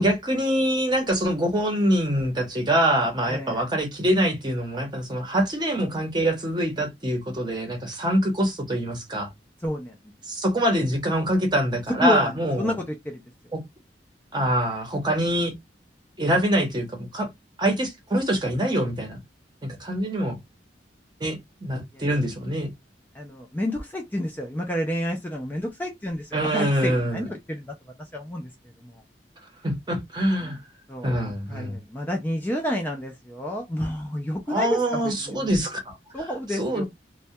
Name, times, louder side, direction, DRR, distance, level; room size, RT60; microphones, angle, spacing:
voice 1, 0.0-9.3 10.3-12.7 13.5-13.6 14.3-15.5 16.2-16.9 17.1-17.3 17.6-19.2 19.6-20.4 21.2-22.7 26.3-27.2 29.6-30.6 31.0-31.8 34.5-35.9 36.6-36.9, equal, 25° right, 0.8 m, -24 dB
voice 2, 3.3-3.7 9.6-9.9 12.0-13.2 21.9-22.0 23.1-28.5 28.8-29.0 30.4-30.6 30.9-35.5 36.1-36.9, equal, 10° left, 0.4 m, -30 dB
2.2 x 2.1 x 2.7 m
head